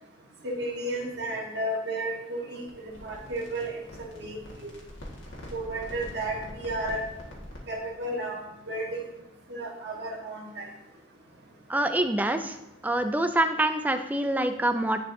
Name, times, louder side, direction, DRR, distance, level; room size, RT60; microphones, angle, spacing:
voice 1, 0.4-4.3 4.6-4.7 5.5-7.0 7.7-9.0 9.5-10.7, right 1 dB, 60° right, -1 dB, 1.4 m, -33 dB
sound 1, 2.7-7.7, equal, 90° left, 1.7 m, -44 dB
voice 2, 11.7-12.6 12.8-15.0, right 1 dB, 10° right, 8 dB, 0.4 m, -25 dB
10.5 x 4.4 x 2.7 m, 0.92 s
head